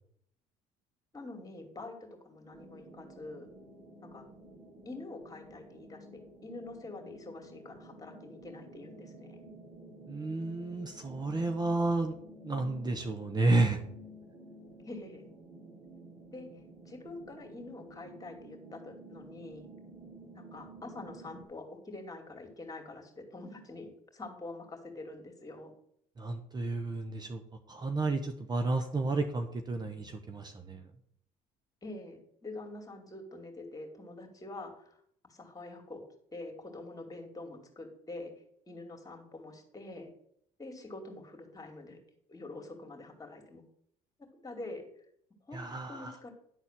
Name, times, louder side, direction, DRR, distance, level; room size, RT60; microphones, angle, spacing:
voice 1, 1.1-3.5 4.1-4.2 4.8-9.5 14.8-15.3 16.3-16.5 16.9-19.7 20.3-25.7 31.8-36.0 36.3-38.3 38.7-40.1 40.6-42.0 42.3-43.6 44.2-44.8 45.5-45.6 45.9-46.3, left 2 dB, 20° left, 3 dB, 2.7 m, -45 dB
sound 1, 2.5-21.4, right 1 dB, 45° right, 3.2 m, -52 dB
voice 2, 10.1-12.1 12.4-13.8 26.2-27.4 27.7-30.8 45.5-46.1, right 2 dB, 25° right, 6 dB, 1.0 m, -31 dB
11.0 x 4.1 x 7.5 m, 0.68 s
supercardioid pair, 90°, 16 cm